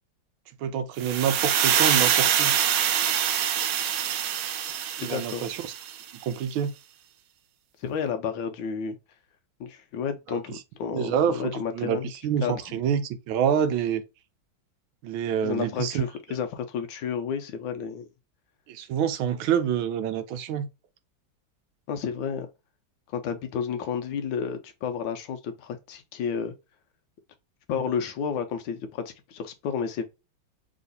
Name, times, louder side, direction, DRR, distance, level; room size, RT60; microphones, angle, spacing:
voice 1, 0.6-2.5 5.0-5.6 6.2-6.7 10.3-10.4 10.9-11.4 11.7-12.0 12.2-14.0 15.0-16.0 18.7-20.7, right 8 dB, 90° right, 1.4 m, -27 dB
sound 1, 1.0-6.0, right 9 dB, 75° right, 1.1 m, -25 dB
voice 2, 4.8-5.4 7.8-9.0 9.6-12.1 12.4-12.5 15.4-18.1 21.9-22.5 23.1-26.5 27.7-30.0, left 7 dB, 75° left, 1.4 m, -31 dB
3.5 x 3.1 x 3.9 m
omnidirectional pair, 2.2 m